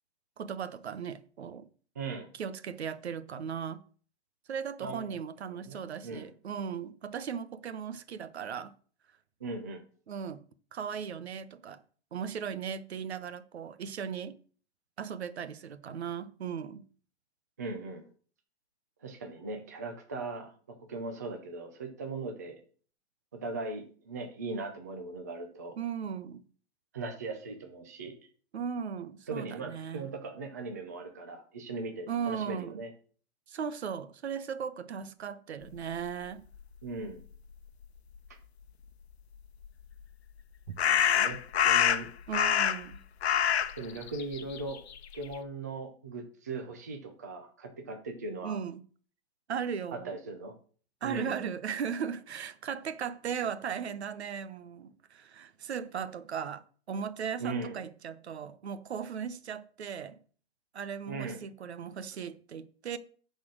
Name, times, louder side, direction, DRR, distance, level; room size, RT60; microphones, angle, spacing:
voice 1, 0.4-1.7 2.3-3.8 4.5-8.7 10.1-10.4 10.7-11.8 12.1-14.4 15.0-16.8 25.8-26.4 28.5-30.1 32.1-32.8 33.5-36.4 40.7-40.8 42.3-43.0 48.4-48.8 49.5-50.2 51.0-60.2 60.7-63.0, right 7 dB, 70° right, 1.0 m, -37 dB
voice 2, 2.0-2.3 4.8-5.2 5.5-6.3 9.4-9.8 17.6-18.1 19.0-22.6 23.3-25.8 26.9-28.2 29.3-32.9 36.8-37.2 40.8-41.4 41.6-42.1 43.8-44.8 45.1-48.6 49.9-50.5 51.0-51.4 57.4-57.8 61.1-61.4, right 3 dB, 15° right, 0.5 m, -39 dB
sound 1, 39.6-39.7 40.8-42.9 43.2-45.3, left 9 dB, 70° left, 0.9 m, -26 dB
9.7 x 4.3 x 6.4 m
hypercardioid pair, 180°, 33 cm